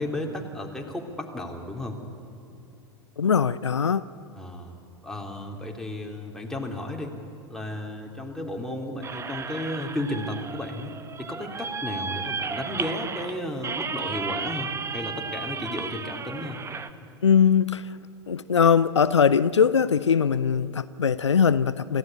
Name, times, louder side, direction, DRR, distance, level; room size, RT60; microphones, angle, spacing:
voice 1, 0.0-2.0 4.3-4.8 5.0-7.1 7.5-10.9 11.2-16.6, left 1 dB, 5° left, 3.2 m, -33 dB
voice 2, 3.2-4.0 17.2-18.0 18.3-22.0, left 7 dB, 80° left, 0.5 m, -21 dB
sound 1, 9.0-16.9, right 5 dB, 20° right, 1.0 m, -34 dB
27.5 x 15.5 x 9.8 m
figure-of-eight pair, 85°, 15 cm